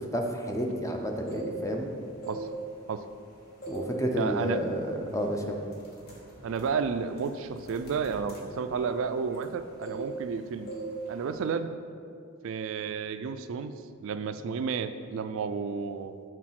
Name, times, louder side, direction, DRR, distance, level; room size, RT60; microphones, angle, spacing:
voice 1, 0.1-1.9 3.7-5.6, equal, 15° left, 3 dB, 0.6 m, -30 dB
sound 1, 1.0-1.8 2.2-3.2 3.6-4.0 4.3-4.6 5.2-5.3 5.7-9.5 9.8-10.4 10.7-11.0 11.2-11.5, right 2 dB, 50° left, 1.5 m, -41 dB
voice 2, 4.1-4.6 6.4-10.7 11.1-11.7 12.4-16.1, right 5 dB, 65° right, 10 dB, 0.3 m, -32 dB
6.3 x 4.7 x 5.8 m, 2.4 s
head